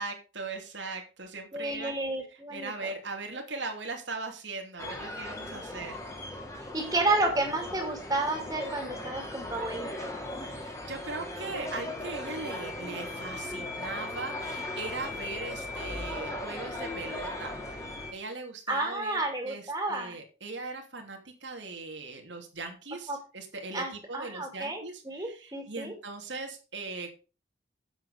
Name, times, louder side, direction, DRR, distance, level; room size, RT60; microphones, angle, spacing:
voice 1, 0.0-1.9 2.3-6.0 10.4-17.6 18.1-27.2, right 3 dB, 80° right, 3 dB, 2.9 m, -39 dB
voice 2, 1.5-2.9 6.7-10.1 18.7-20.2 23.1-23.2 23.7-25.9, right 2 dB, 20° right, 2 dB, 2.6 m, -31 dB
sound 1, 4.8-18.1, left 1 dB, 15° left, 2.5 m, -38 dB
9.1 x 7.9 x 5.0 m, 0.32 s
head